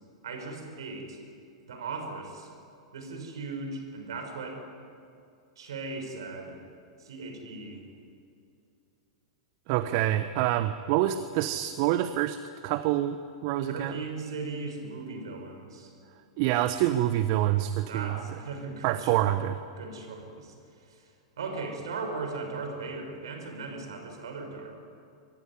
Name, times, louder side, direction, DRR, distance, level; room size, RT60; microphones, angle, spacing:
voice 1, 0.2-1.2 1.7-2.5 2.9-4.6 5.6-6.6 7.0-7.8 13.6-15.9 17.9-19.4 19.8-21.1 21.4-24.7, right 3 dB, 65° right, 4 dB, 6.0 m, -38 dB
voice 2, 9.7-13.2 13.4-14.0 16.4-18.2 18.8-19.5, right 13 dB, 45° right, 12 dB, 1.0 m, -26 dB
24.0 x 22.0 x 9.7 m, 2.5 s
figure-of-eight pair, 95°, 3 cm